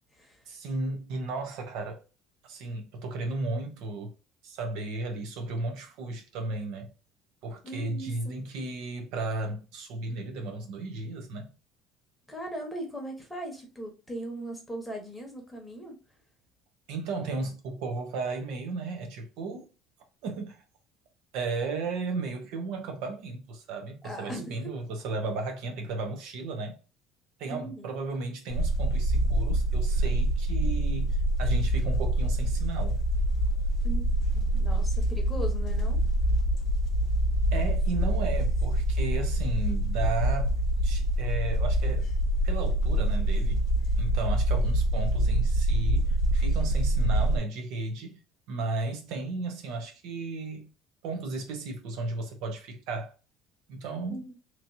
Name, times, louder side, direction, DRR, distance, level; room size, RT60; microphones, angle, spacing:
voice 1, 0.5-2.0 2.4-4.1 4.4-6.9 7.4-11.5 16.9-19.7 20.2-20.6 21.3-26.8 27.4-33.0 37.5-40.5 40.8-42.1 42.4-43.6 44.0-48.2 48.5-50.7 51.0-53.1 53.7-54.2, right 3 dB, 75° right, 0.9 m, -34 dB
voice 2, 7.6-8.4 12.3-16.0 24.0-24.6 27.5-27.9 33.8-36.0 54.1-54.3, right 1 dB, 5° left, 1.0 m, -39 dB
sound 1, 28.5-47.4, right 1 dB, 50° left, 0.4 m, -25 dB
3.0 x 2.8 x 2.6 m
cardioid pair, 145°, 0 cm